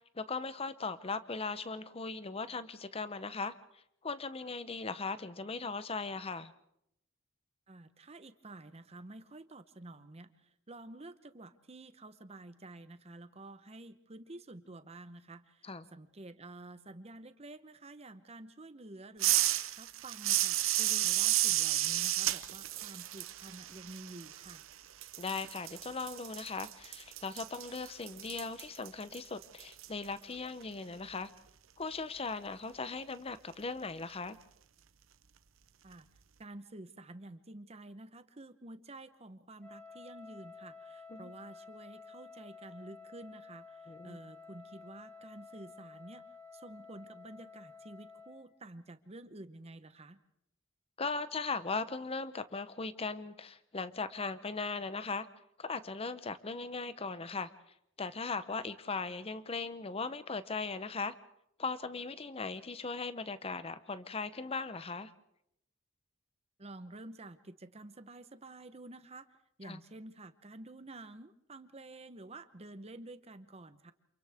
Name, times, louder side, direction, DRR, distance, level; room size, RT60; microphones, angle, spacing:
voice 1, 0.1-3.5 4.0-6.5 15.6-15.9 20.8-21.1 25.2-31.3 31.8-34.4 41.1-41.3 43.9-44.2 51.0-55.3 55.6-57.5 58.0-61.1 61.6-65.1 69.6-69.8, left 4 dB, 30° left, 13 dB, 0.8 m, -38 dB
voice 2, 7.7-10.3 10.7-20.7 21.0-24.6 35.8-36.1 36.4-46.2 46.5-50.2 66.6-69.3 69.6-73.9, right 2 dB, 30° right, 11 dB, 0.9 m, -50 dB
sound 1, 19.2-24.7 25.0-29.9, right 14 dB, 90° right, 0.8 m, -32 dB
Wind instrument woodwind instrument, 39.6-48.5, left 4 dB, 10° left, 3.9 m, -52 dB
29.0 x 27.5 x 3.5 m, 0.78 s
head